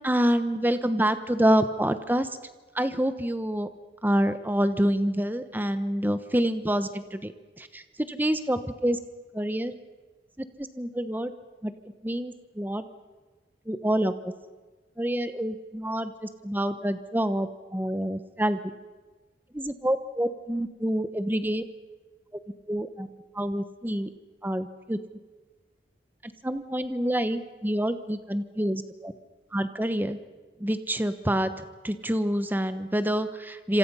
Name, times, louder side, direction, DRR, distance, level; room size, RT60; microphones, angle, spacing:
voice 1, 0.0-2.3 2.8-3.7 4.0-7.3 7.6-7.8 8.1-9.0 9.3-9.7 10.6-11.3 11.6-11.7 12.0-12.8 13.7-14.1 15.0-18.6 19.5-21.6 22.7-23.1 23.4-24.1 24.4-25.0 26.4-29.1 29.5-30.2 30.6-31.5 31.8-33.8, equal, 10° right, 10 dB, 1.0 m, -27 dB
27.5 x 26.0 x 5.6 m, 1.3 s
head